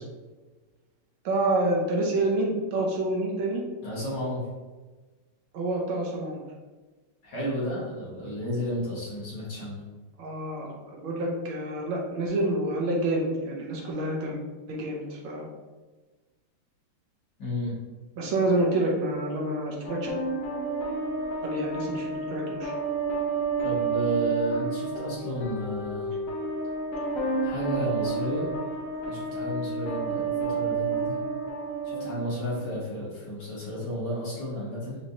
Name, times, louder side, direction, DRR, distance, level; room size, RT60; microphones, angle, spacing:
voice 1, 1.2-3.6 5.5-6.4 10.2-14.4 14.7-15.5 18.2-20.1 21.4-22.7, right 1 dB, 70° right, -1 dB, 1.4 m, -28 dB
voice 2, 3.8-4.5 7.2-9.8 17.4-17.7 23.6-26.1 27.4-28.5 29.1-31.2 31.8-35.0, equal, 55° left, -8 dB, 1.9 m, -32 dB
sound 1, 19.8-32.9, right 4 dB, 70° left, 0.8 m, -30 dB
5.1 x 3.1 x 2.7 m, 1.3 s
omnidirectional pair, 2.4 m